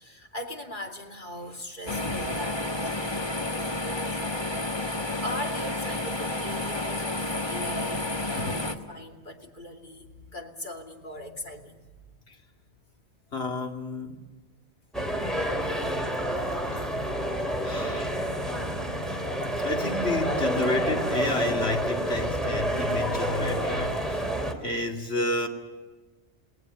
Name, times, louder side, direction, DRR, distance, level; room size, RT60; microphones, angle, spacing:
voice 1, 0.0-3.3 3.7-4.4 4.7-11.9 20.7-20.8, left 1 dB, 45° left, 2 dB, 3.0 m, -40 dB
sound 1, 1.9-8.7, left 2 dB, 25° left, 1.5 m, -30 dB
voice 2, 13.3-14.3 16.1-16.3 16.7-17.0 17.6-18.2 19.6-24.3 24.6-25.5, left 2 dB, 60° left, 3 dB, 2.8 m, -31 dB
sound 2, 14.9-24.5, equal, ahead, 2.9 m, -28 dB
29.5 x 18.5 x 6.7 m, 1.3 s
omnidirectional pair, 1.2 m